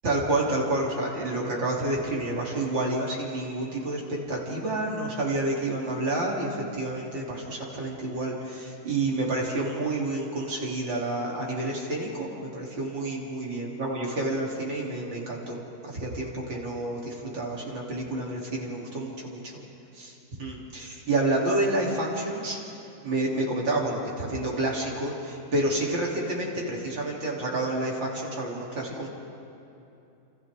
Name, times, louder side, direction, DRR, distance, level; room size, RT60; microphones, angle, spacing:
voice 1, 0.0-15.6 15.8-19.5 19.9-20.1 20.4-22.6 23.0-29.1, right 2 dB, 65° right, -3 dB, 4.1 m, -29 dB
28.5 x 28.0 x 3.8 m, 2.8 s
omnidirectional pair, 2.2 m